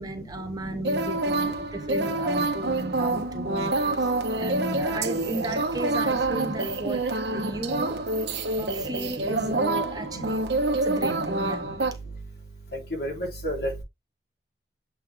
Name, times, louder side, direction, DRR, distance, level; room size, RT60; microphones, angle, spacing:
voice 1, 0.0-7.0 7.3-8.0 8.6-10.4 10.8-11.6, right 1 dB, 20° right, 0.9 m, -35 dB
voice 2, 0.6-1.0 1.9-2.1 3.6-3.7 4.7-4.9 5.3-5.4 6.5-6.6 7.7-7.9 9.3-9.6 11.0-11.3 13.0-13.7, equal, 60° left, 3.5 m, -33 dB
sound 1, 0.8-11.9, right 2 dB, 70° right, 1.2 m, -27 dB
7.9 x 3.5 x 3.5 m
head